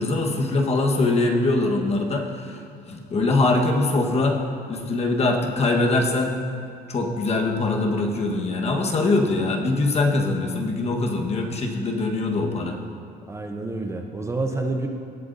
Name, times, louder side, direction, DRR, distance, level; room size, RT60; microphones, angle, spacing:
voice 1, 0.0-2.6 2.9-4.4 4.7-6.3 6.9-12.8, left 2 dB, 40° left, 2 dB, 1.3 m, -22 dB
voice 2, 13.3-14.9, right 2 dB, 15° right, 3 dB, 0.7 m, -28 dB
18.5 x 7.7 x 2.7 m, 2.3 s
cardioid pair, 110°, 17 cm